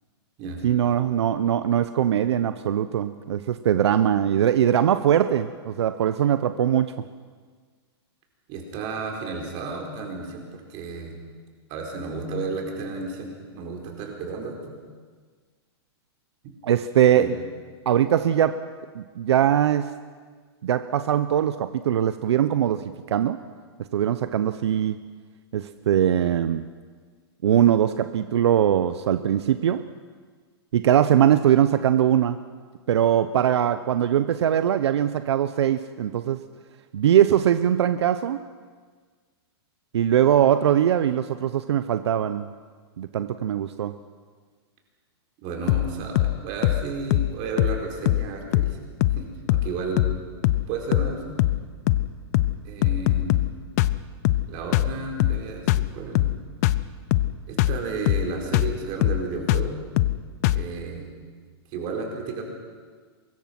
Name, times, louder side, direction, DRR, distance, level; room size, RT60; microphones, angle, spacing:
voice 1, 0.6-6.9 16.6-17.3 17.9-18.6 18.9-19.9 20.6-23.4 23.9-25.0 25.5-26.6 27.4-29.8 30.7-32.4 32.9-36.4 36.9-38.4 39.9-42.5 43.0-44.0, right 10 dB, 80° right, 11 dB, 0.9 m, -21 dB
voice 2, 8.5-11.1 11.7-13.3 13.5-14.7 16.4-16.5 17.1-17.3 45.4-48.8 49.1-50.1 50.7-51.4 52.6-53.5 54.5-56.3 57.5-59.8 60.5-61.1 61.7-62.4, right 4 dB, 35° right, 1 dB, 4.5 m, -32 dB
sound 1, 45.7-45.9 46.2-46.4 46.6-46.8 47.1-47.3 47.6-47.8 48.1-48.3 48.5-48.7 49.0-49.2 49.5-49.7 50.0-50.2 50.4-50.7 50.9-51.1 51.4-51.6 51.9-52.1 52.3-52.6 52.8-53.5 53.8-54.0 54.2-54.5 54.7-54.9 55.2-55.4 55.7-55.9 56.1-56.4 56.6-56.8 57.1-57.3 57.6-57.8 58.1-58.3 58.5-58.7 59.0-59.2 59.5-59.7 60.0-60.2 60.4-60.7, left 16 dB, 35° left, 0.6 m, -21 dB
24.0 x 21.5 x 6.0 m, 1.6 s
hypercardioid pair, 160°, 14 cm